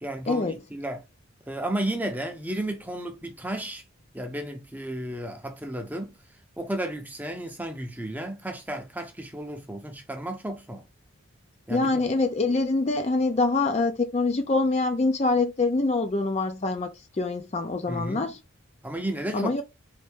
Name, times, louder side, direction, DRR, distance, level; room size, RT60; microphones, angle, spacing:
voice 1, 0.0-1.0 1.5-3.8 4.1-6.2 6.6-10.8 11.7-12.1 17.9-18.3 18.8-19.5, right 1 dB, 10° right, 0.6 m, -33 dB
voice 2, 11.7-16.9 17.2-18.4 19.3-19.6, left 3 dB, 30° left, 0.5 m, -25 dB
4.2 x 2.6 x 3.4 m
head